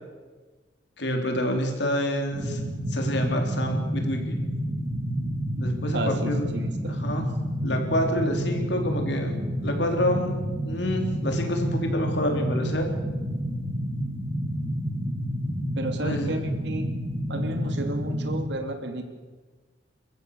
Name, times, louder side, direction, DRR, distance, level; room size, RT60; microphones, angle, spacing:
voice 1, 1.0-2.6 2.9-4.4 5.5-6.5 6.9-7.3 7.6-9.3 9.6-10.3 10.7-12.9 16.0-16.3, equal, 65° left, 3 dB, 3.9 m, -27 dB
sound 1, 2.3-18.4, equal, 35° right, 3.8 m, -29 dB
voice 2, 5.9-7.0 15.8-16.9 17.3-19.0, right 1 dB, 65° right, 6 dB, 2.8 m, -32 dB
27.5 x 14.5 x 7.0 m, 1.3 s
head